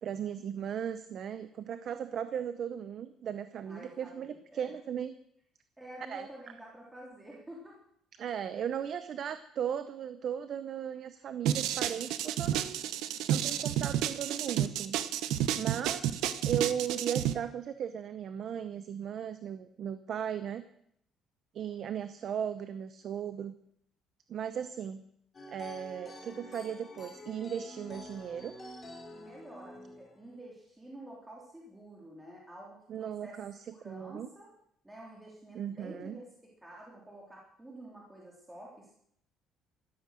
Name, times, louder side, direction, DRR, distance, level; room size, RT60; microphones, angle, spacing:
voice 1, 0.0-5.1 6.1-6.3 8.2-12.8 13.3-15.0 15.6-20.6 21.5-23.5 24.3-25.0 25.5-28.5 32.9-34.3 35.5-36.2, right 8 dB, 45° right, 12 dB, 0.8 m, -37 dB
voice 2, 3.6-4.7 5.8-7.8 29.1-33.4 33.7-34.5 34.8-36.3 36.6-38.9, right 1 dB, 10° right, -3 dB, 3.0 m, -49 dB
sound 1, 11.5-17.3, right 11 dB, 75° right, 1.0 m, -30 dB
sound 2, 25.3-30.4, left 1 dB, 20° left, 3.1 m, -48 dB
14.0 x 13.0 x 6.5 m, 0.70 s
cardioid pair, 160°, 0 cm